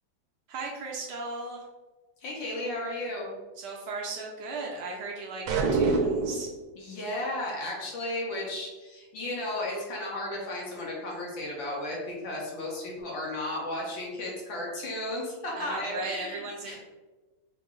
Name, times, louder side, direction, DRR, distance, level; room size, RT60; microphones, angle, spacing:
voice 1, 0.5-1.6 3.6-6.5 15.6-16.8, right 3 dB, 70° right, -1 dB, 1.1 m, -37 dB
voice 2, 2.2-3.3 6.8-16.8, left 1 dB, 75° left, -4 dB, 1.8 m, -34 dB
sound 1, 5.5-6.5, right 3 dB, 90° right, 1.4 m, -25 dB
4.5 x 2.0 x 3.6 m, 1.2 s
omnidirectional pair, 2.1 m